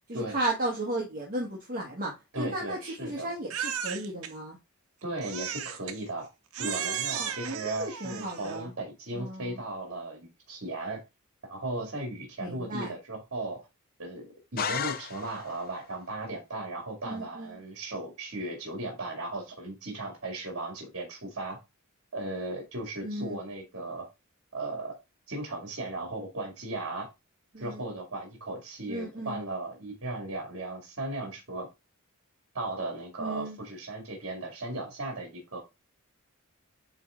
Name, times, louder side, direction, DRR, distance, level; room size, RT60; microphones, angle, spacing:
voice 1, 0.1-4.6 6.6-8.7 9.1-9.6 12.4-12.9 17.0-17.6 23.0-23.4 27.5-27.8 28.9-29.4 33.2-33.6, right 1 dB, 40° right, 1.5 m, -35 dB
voice 2, 2.3-3.3 5.0-6.3 6.6-11.0 11.4-13.7 14.0-21.6 22.1-24.1 24.5-25.0 25.3-27.1 27.6-31.7 32.5-35.6, right 2 dB, 60° right, 2.2 m, -36 dB
Crying sobbing, 3.5-4.3 5.2-6.0 6.5-8.6, right 8 dB, 75° right, 0.9 m, -35 dB
sound 1, 14.6-15.7, left 7 dB, 45° left, 0.6 m, -33 dB
9.0 x 3.3 x 3.7 m
head